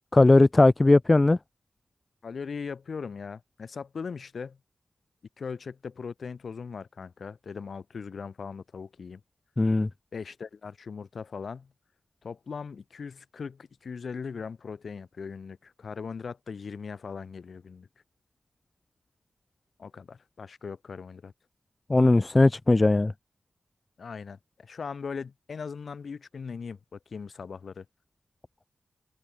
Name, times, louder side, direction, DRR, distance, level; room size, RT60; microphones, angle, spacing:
voice 1, 0.1-1.4 9.6-9.9 21.9-23.1, left 2 dB, 30° left, 0.3 m, -19 dB
voice 2, 2.2-4.6 5.4-9.2 10.1-11.7 12.2-17.9 19.8-21.3 24.0-27.9, left 5 dB, 70° left, 3.7 m, -39 dB
open air
cardioid pair, 55°, 0 cm